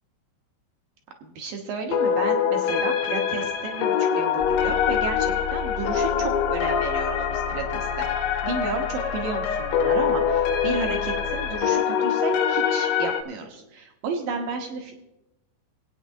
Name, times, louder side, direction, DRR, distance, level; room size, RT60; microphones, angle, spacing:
voice 1, 1.2-8.0 8.4-15.0, right 4 dB, 80° right, 3 dB, 2.0 m, -32 dB
sound 1, 1.9-13.2, left 7 dB, 80° left, 3.1 m, -24 dB
sound 2, 4.4-11.5, left 6 dB, 40° left, 0.3 m, -36 dB
21.5 x 8.9 x 2.7 m, 0.95 s
omnidirectional pair, 5.3 m